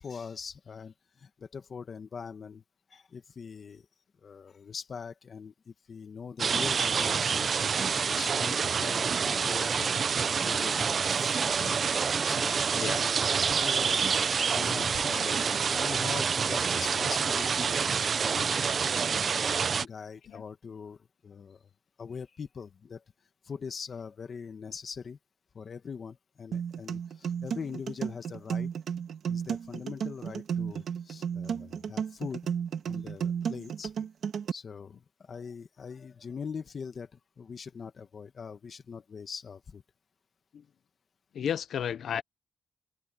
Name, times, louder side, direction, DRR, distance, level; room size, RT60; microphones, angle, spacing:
voice 1, 0.0-2.6 2.9-3.8 4.2-7.5 7.9-11.8 12.2-14.0 14.5-21.6 22.0-23.0 23.4-25.2 25.5-28.7 29.3-32.4 32.8-33.9 34.5-37.1 37.4-39.8, left 6 dB, 50° left, 1.7 m, -42 dB
sound 1, 6.4-19.9, right 6 dB, 50° right, 0.6 m, -27 dB
sound 2, 26.5-34.5, right 7 dB, 70° right, 1.9 m, -33 dB
voice 2, 41.3-42.2, left 8 dB, 75° left, 0.7 m, -32 dB
open air
cardioid pair, 100°, 0 cm